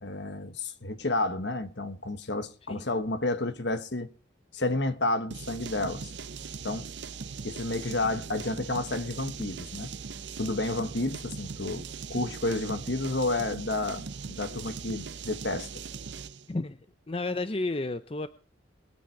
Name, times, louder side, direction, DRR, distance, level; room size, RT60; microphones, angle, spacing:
voice 1, 0.0-4.1 4.5-6.1 6.6-6.8 7.4-9.9 10.4-15.8, left 2 dB, 60° left, 1.3 m, -31 dB
sound 1, 5.3-16.5, right 5 dB, 60° right, 0.7 m, -40 dB
voice 2, 16.5-16.8 17.1-18.3, left 2 dB, 30° left, 0.6 m, -31 dB
22.5 x 9.1 x 4.7 m
head